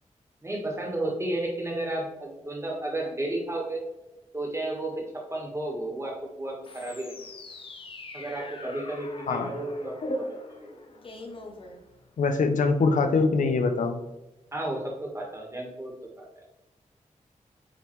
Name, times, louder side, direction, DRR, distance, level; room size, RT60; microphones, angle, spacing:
voice 1, 0.4-3.8 4.3-7.1 8.1-10.3 10.6-10.8 14.5-16.4, right 1 dB, 20° right, -1 dB, 1.5 m, -33 dB
sound 1, 6.6-12.3, left 1 dB, 45° left, 0.7 m, -40 dB
voice 2, 12.2-14.0, left 4 dB, 80° left, 7 dB, 0.6 m, -23 dB
8.7 x 3.5 x 3.1 m, 1.0 s
wide cardioid pair, 135°, 13 cm